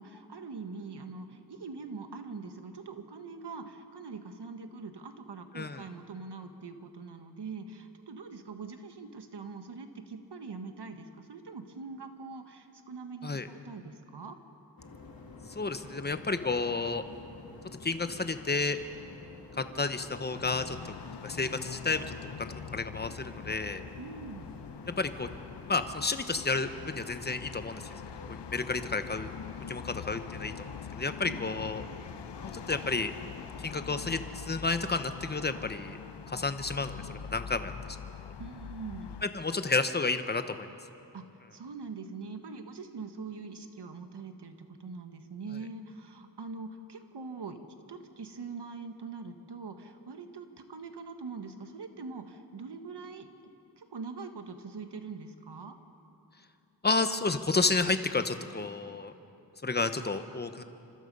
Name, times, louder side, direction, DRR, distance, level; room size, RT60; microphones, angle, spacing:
voice 1, 0.0-14.4 24.0-24.5 31.2-31.6 38.4-39.1 41.1-41.2 41.5-47.6 47.9-55.8, right 4 dB, 70° right, 7 dB, 1.7 m, -43 dB
sound 1, 14.8-33.6, left 3 dB, 55° left, 2.4 m, -49 dB
voice 2, 15.5-17.0 17.8-18.8 19.6-20.8 21.2-22.0 22.4-23.8 24.9-25.3 25.7-27.8 28.3-29.3 29.7-31.8 32.5-33.1 33.6-36.0 36.3-37.7 39.2-40.7 56.8-59.1 59.6-60.6, left 3 dB, 25° left, 9 dB, 1.1 m, -31 dB
sound 2, 20.3-39.3, left 7 dB, 80° left, 0.8 m, -44 dB
28.5 x 25.5 x 5.5 m, 2.7 s
wide cardioid pair, 125°, 41 cm